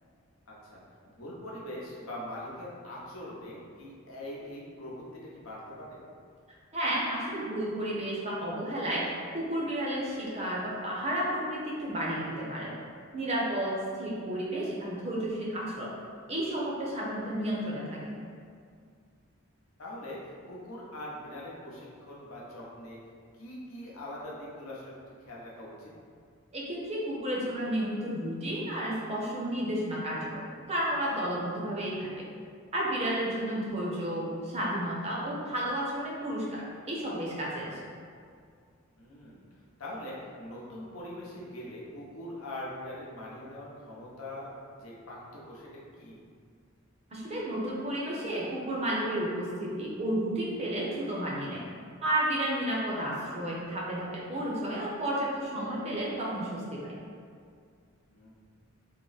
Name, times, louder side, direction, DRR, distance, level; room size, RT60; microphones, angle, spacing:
voice 1, 0.5-0.8 1.1-6.0 19.8-23.0 23.4-24.9 25.3-25.9 39.0-39.4 39.8-45.7 46.0-46.2 58.1-58.4, left 1 dB, 75° left, -5 dB, 0.8 m, -42 dB
voice 2, 6.7-9.0 9.3-12.7 13.1-15.9 16.3-18.2 26.5-32.3 32.7-37.8 47.1-51.6 52.0-56.9, right 1 dB, 30° right, -5 dB, 0.6 m, -32 dB
3.7 x 2.1 x 3.9 m, 2.2 s
head